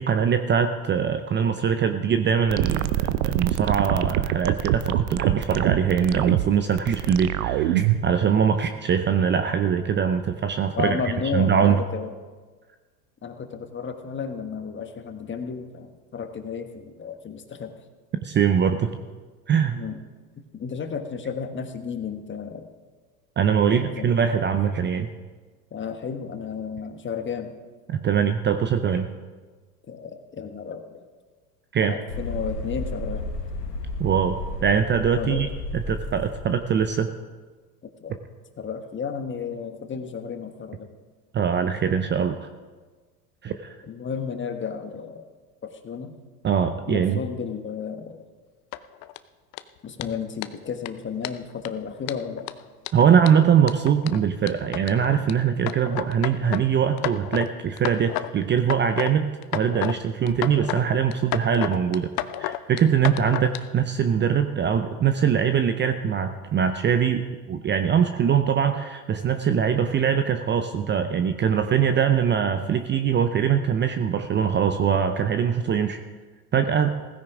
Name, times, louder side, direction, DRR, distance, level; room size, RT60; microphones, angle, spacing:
voice 1, 0.0-11.0 11.3-11.8 18.2-18.9 19.5-19.8 23.4-25.1 27.9-29.1 31.7-31.9 34.0-35.5 35.7-37.1 41.3-42.5 43.4-43.8 46.4-47.2 52.9-59.3 59.5-62.1 62.4-76.0 76.5-76.9, right 7 dB, 25° right, 9 dB, 0.6 m, -22 dB
sound 1, 2.5-8.1, right 13 dB, 65° right, 0.8 m, -24 dB
voice 2, 10.8-12.1 13.2-17.7 19.7-20.0 20.5-22.7 23.7-24.1 25.7-27.5 29.9-31.0 31.8-33.3 35.1-35.5 38.0-38.1 38.6-40.9 43.9-45.2 45.6-46.2 46.8-48.2 49.8-52.5, left 6 dB, 25° left, 7 dB, 1.4 m, -33 dB
sound 2, 32.1-36.9, left 1 dB, 85° left, 1.6 m, -33 dB
sound 3, 48.7-49.2 49.5-49.6 50.0-50.1 50.4-50.5 50.9-51.0 51.2-51.7 52.1-55.3 55.7-56.6 57.0-57.5 57.8-58.3 58.6-59.1 59.4-60.0 60.3-60.8 61.1-63.6, left 15 dB, 45° left, 0.7 m, -31 dB
16.5 x 15.0 x 3.6 m, 1.4 s
hypercardioid pair, 85°, 47 cm